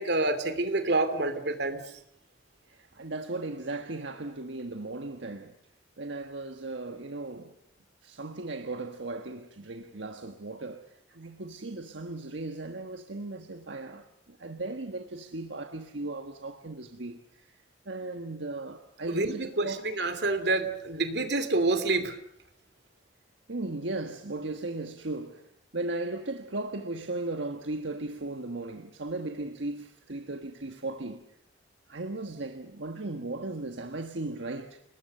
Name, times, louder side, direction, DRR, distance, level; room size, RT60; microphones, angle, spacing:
voice 1, 0.0-1.8 19.1-22.2, right 2 dB, 60° right, 2.8 m, -27 dB
voice 2, 2.7-5.5 6.0-7.5 8.0-17.6 17.8-19.8 23.5-25.5 25.7-31.3 31.9-34.8, right 2 dB, 80° right, 1.4 m, -37 dB
30.0 x 20.0 x 6.7 m
head